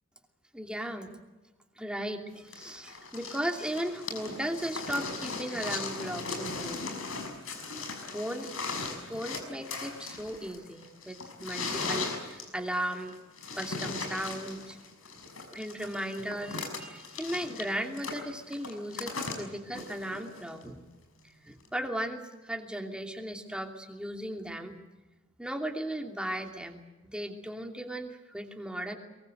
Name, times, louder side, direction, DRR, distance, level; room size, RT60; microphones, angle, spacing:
voice 1, 0.5-1.1 1.8-6.9 7.5-8.5 9.0-13.2 13.5-14.8 15.5-20.8 21.4-24.8 25.4-26.8 27.1-29.0, right 1 dB, 5° right, 3 dB, 2.8 m, -36 dB
sound 1, 2.5-20.6 21.7-21.8, left 4 dB, 85° left, 5.9 m, -38 dB
23.0 x 23.0 x 7.9 m, 1.2 s
head